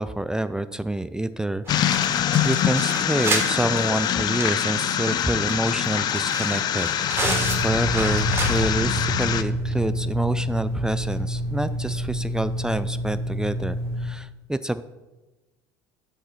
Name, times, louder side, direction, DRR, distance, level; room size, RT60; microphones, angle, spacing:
voice 1, 0.0-1.6 2.4-7.4 7.6-14.8, right 1 dB, 5° right, 13 dB, 0.3 m, -27 dB
sound 1, 1.6-8.9 9.2-9.3 9.7-9.8 11.0-11.1, right 2 dB, 25° right, 2.7 m, -32 dB
sound 2, 1.7-9.4, left 10 dB, 45° left, 0.5 m, -24 dB
sound 3, 7.1-14.1, equal, 65° right, 2.0 m, -28 dB
6.7 x 6.5 x 5.7 m, 1.1 s
hypercardioid pair, 75°, 9 cm